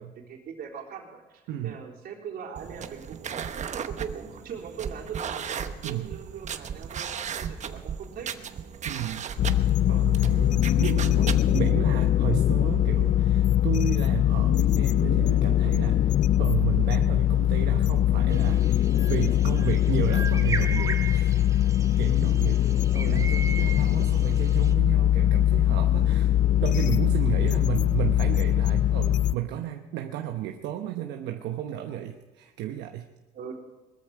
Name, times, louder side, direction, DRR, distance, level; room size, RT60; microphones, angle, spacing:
voice 1, 0.0-8.3 22.5-22.9 33.3-33.5, right 7 dB, 65° right, -1 dB, 3.7 m, -41 dB
sound 1, 2.5-11.7, right 7 dB, 45° right, 1.1 m, -36 dB
voice 2, 5.8-6.2 7.7-7.8 8.8-9.3 9.9-21.4 22.0-22.7 22.9-26.3 26.6-33.1, right 12 dB, 85° right, 4 dB, 1.0 m, -33 dB
sound 2, 9.4-29.3, left 12 dB, 50° left, 0.4 m, -22 dB
sound 3, 18.3-24.7, right 4 dB, 20° right, 1.4 m, -38 dB
20.5 x 13.5 x 4.8 m, 1.2 s
cardioid pair, 110°, 17 cm